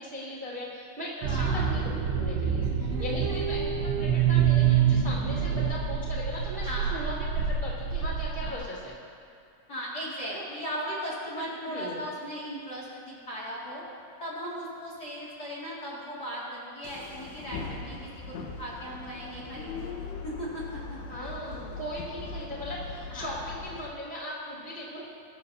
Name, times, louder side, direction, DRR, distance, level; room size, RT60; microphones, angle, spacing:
voice 1, 0.0-2.7 3.0-8.9 10.3-10.4 10.7-10.9 11.3-12.0 21.1-25.0, equal, 45° right, -5 dB, 0.6 m, -38 dB
sound 1, 1.2-8.5, right 7 dB, 85° right, 3.1 m, -26 dB
voice 2, 1.3-1.7 2.6-3.4 6.6-7.0 8.4-8.7 9.7-13.8 14.2-20.0 20.2-21.0 23.1-23.4, equal, 35° left, -6 dB, 1.8 m, -38 dB
sound 2, 16.8-23.9, left 4 dB, 85° left, 3.3 m, -40 dB
23.0 x 13.5 x 2.7 m, 2.5 s
omnidirectional pair, 4.9 m